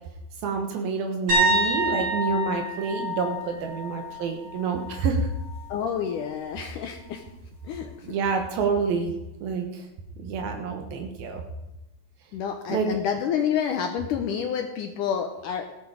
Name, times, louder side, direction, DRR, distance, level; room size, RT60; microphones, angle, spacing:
voice 1, 0.4-5.3 8.0-9.1 9.4-9.9 10.2-11.4 12.7-12.9, right 5 dB, 80° right, 3 dB, 3.1 m, -28 dB
sound 1, 1.3-5.0 5.4-5.7 8.6-8.7, equal, 50° right, 6.1 m, -27 dB
voice 2, 5.7-7.2 7.6-8.1 12.3-15.7, left 8 dB, 70° left, 4 dB, 2.2 m, -29 dB
15.0 x 11.5 x 5.1 m, 0.96 s
omnidirectional pair, 4.2 m